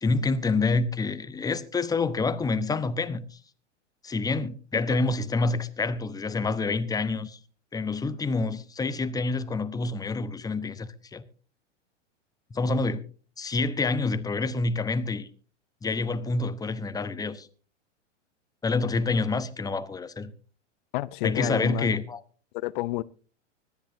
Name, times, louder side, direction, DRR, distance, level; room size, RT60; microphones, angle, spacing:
voice 1, 0.0-3.4 4.0-7.4 7.7-11.2 12.5-13.0 13.4-15.3 15.8-17.5 18.6-20.3 21.2-22.2, left 3 dB, 10° left, 0.9 m, -27 dB
voice 2, 20.9-21.9 22.5-23.0, left 19 dB, 45° left, 0.6 m, -29 dB
25.0 x 10.5 x 2.7 m
hypercardioid pair, 105°, 37 cm